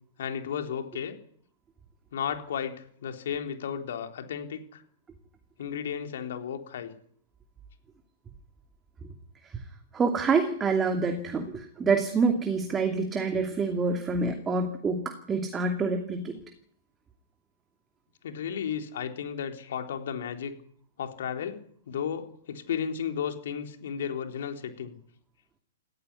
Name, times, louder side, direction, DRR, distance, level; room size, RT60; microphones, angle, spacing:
voice 1, 0.2-1.2 2.1-4.8 5.6-6.9 18.2-20.5 21.0-24.9, left 8 dB, 65° left, 6 dB, 3.7 m, -34 dB
voice 2, 9.9-16.3, right 4 dB, 15° right, 5 dB, 2.6 m, -27 dB
18.0 x 15.0 x 9.8 m, 0.62 s
hypercardioid pair, 125°, 0 cm